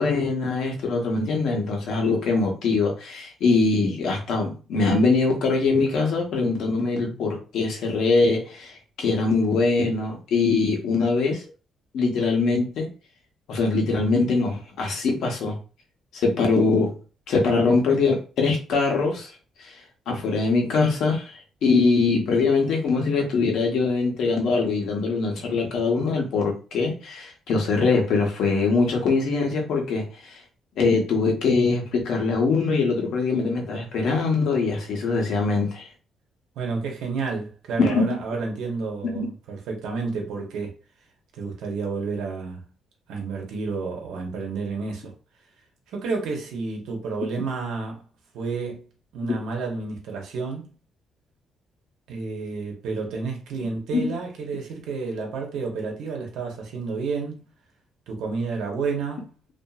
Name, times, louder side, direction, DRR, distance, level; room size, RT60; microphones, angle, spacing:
voice 1, 0.0-11.4 11.9-12.9 13.5-15.6 16.1-17.0 17.3-19.3 19.6-19.8 20.1-30.4 30.8-35.9 37.8-38.2 39.0-39.3 53.9-54.1, left 4 dB, 75° left, 0.9 m, -23 dB
voice 2, 36.6-40.7 41.4-42.7 43.1-45.1 45.9-48.0 48.3-48.8 49.1-50.7 52.1-57.5 58.1-59.5, right 4 dB, 85° right, 0.9 m, -30 dB
2.7 x 2.5 x 2.3 m
cardioid pair, 90°, 0 cm